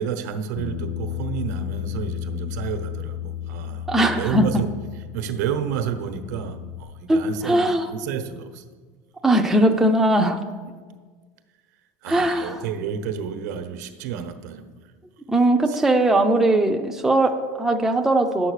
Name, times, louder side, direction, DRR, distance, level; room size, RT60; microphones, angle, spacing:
voice 1, 0.0-3.9 4.1-4.7 4.9-8.6 12.0-14.7 15.7-15.8, right 7 dB, 80° right, 8 dB, 1.1 m, -30 dB
Bass guitar, 0.6-6.8, left 11 dB, 60° left, 1.2 m, -33 dB
voice 2, 3.9-4.5 7.1-7.9 9.2-10.4 12.1-12.6 15.3-18.5, right 1 dB, 5° right, 3 dB, 0.5 m, -19 dB
10.0 x 7.8 x 6.5 m, 1.5 s
supercardioid pair, 170°, 9 cm